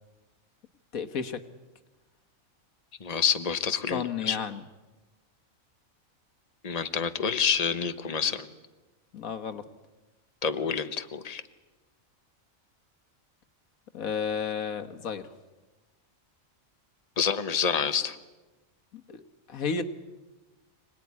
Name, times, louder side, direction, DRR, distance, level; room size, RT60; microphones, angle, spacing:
voice 1, 0.9-1.4 3.9-4.6 9.1-9.6 13.9-15.3 18.9-19.2 19.5-19.8, left 6 dB, 90° left, 8 dB, 1.8 m, -32 dB
voice 2, 3.0-4.4 6.6-8.5 10.4-11.4 17.2-18.2, left 6 dB, 30° left, 10 dB, 1.2 m, -28 dB
25.5 x 19.0 x 9.7 m, 1.2 s
omnidirectional pair, 1.4 m